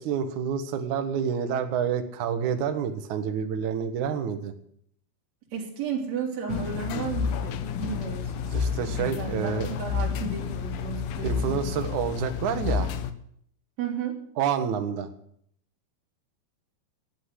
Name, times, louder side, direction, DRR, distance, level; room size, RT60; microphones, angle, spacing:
voice 1, 0.0-4.5 8.5-9.7 11.2-12.9 14.4-15.1, right 7 dB, 70° right, 7 dB, 1.9 m, -28 dB
voice 2, 5.5-8.6 9.2-11.7 13.8-14.2, right 7 dB, 40° right, -3 dB, 4.3 m, -33 dB
sound 1, 6.5-13.1, left 6 dB, 80° left, 2.1 m, -30 dB
13.5 x 9.2 x 9.9 m, 0.68 s
omnidirectional pair, 5.2 m